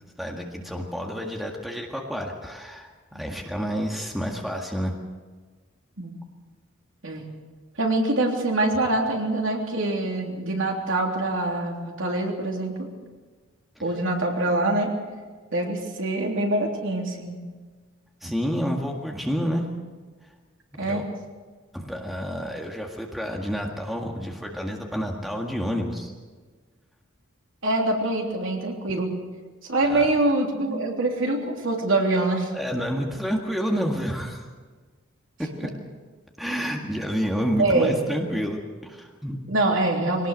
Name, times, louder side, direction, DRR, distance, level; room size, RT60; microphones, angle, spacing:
voice 1, 0.2-4.9 18.2-19.7 20.8-21.1 21.7-26.1 29.9-30.1 30.5-30.9 32.5-34.4 35.6-35.7 36.4-39.4, equal, ahead, 0 dB, 1.8 m, -29 dB
voice 2, 7.8-12.9 13.8-14.9 15.5-17.4 20.8-21.0 27.6-29.1 29.6-32.5 37.6-38.0 39.5-40.3, right 2 dB, 70° right, 0 dB, 3.4 m, -24 dB
22.5 x 18.5 x 6.6 m, 1.4 s
head